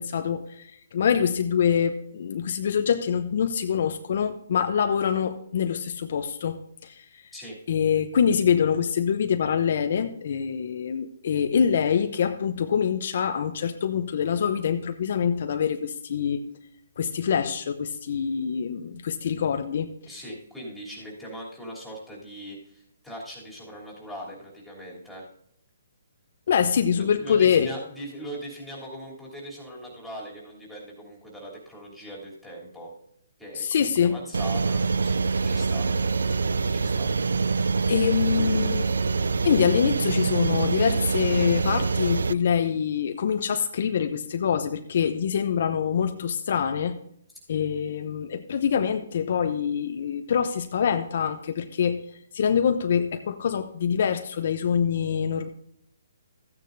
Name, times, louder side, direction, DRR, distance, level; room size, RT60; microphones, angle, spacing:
voice 1, 0.0-7.2 7.7-16.5 17.0-19.9 26.5-27.7 33.6-34.2 37.9-38.8 39.4-47.0 47.5-52.0 52.3-55.5, left 7 dB, 55° left, 7 dB, 0.7 m, -25 dB
voice 2, 20.1-25.3 26.9-32.9 33.4-35.9 36.7-37.1 38.4-38.6, equal, ahead, -4 dB, 3.2 m, -40 dB
sound 1, 34.3-42.3, right 4 dB, 85° right, 0.4 m, -25 dB
14.0 x 9.3 x 2.7 m, 0.70 s
hypercardioid pair, 150°, 0 cm